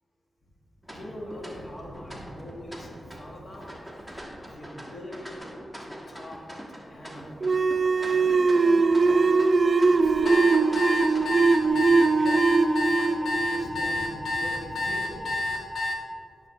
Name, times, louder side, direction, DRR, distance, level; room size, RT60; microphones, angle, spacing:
sound 1, 0.8-11.7, equal, 10° left, 1.3 m, -43 dB
voice 1, 0.9-3.8 4.4-5.3 5.8-6.4 6.7-7.6 7.9-9.0 9.6-15.6, equal, 45° left, -1 dB, 1.5 m, -43 dB
sound 2, 7.4-14.6, right 4 dB, 50° right, 0.4 m, -21 dB
sound 3, 10.1-16.0, left 2 dB, 80° left, 1.0 m, -29 dB
9.3 x 6.3 x 3.1 m, 2.6 s
cardioid pair, 70°, 0 cm